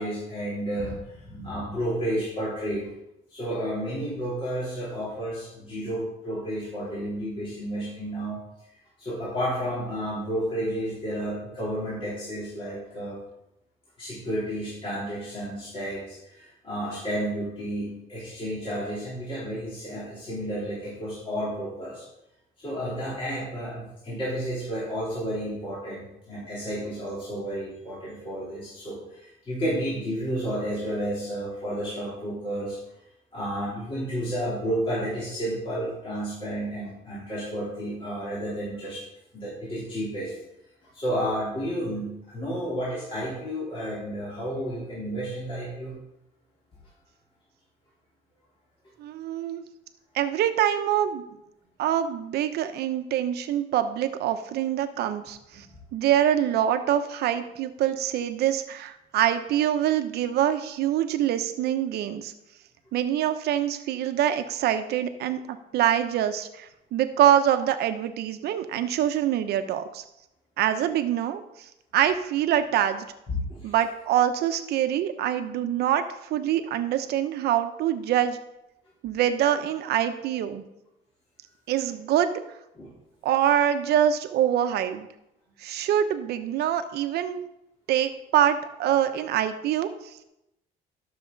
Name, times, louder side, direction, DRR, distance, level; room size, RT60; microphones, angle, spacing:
voice 1, 0.0-2.9 3.3-8.4 9.0-13.2 14.0-22.1 22.6-32.8 33.3-39.0 39.3-40.4 40.9-46.0 73.5-73.7 82.8-82.9, equal, 35° left, -8 dB, 3.7 m, -31 dB
voice 2, 49.0-49.6 50.1-51.2 51.8-55.7 55.9-62.3 62.9-70.0 70.6-73.1 73.6-76.0 76.3-78.4 79.0-80.6 81.7-82.3 83.2-85.1 85.6-87.4 87.9-90.2, right 10 dB, 75° right, 9 dB, 0.9 m, -25 dB
12.5 x 6.9 x 4.0 m, 0.86 s
cardioid pair, 110°, 17 cm